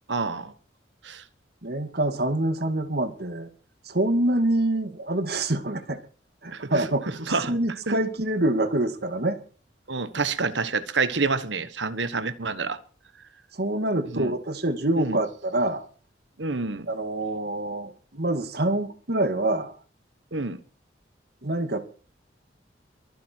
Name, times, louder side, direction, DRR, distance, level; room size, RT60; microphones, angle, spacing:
voice 1, 0.1-0.5 1.0-1.2 6.5-6.8 7.3-7.5 7.9-8.0 9.9-12.8 14.1-14.3 15.0-15.2 16.4-16.9 20.3-20.6, right 4 dB, 75° right, 1.4 m, -28 dB
voice 2, 1.6-3.5 3.9-6.0 6.4-9.4 13.5-15.9 16.9-19.8 21.4-21.8, right 1 dB, 55° right, 2.2 m, -26 dB
23.5 x 9.6 x 4.7 m
head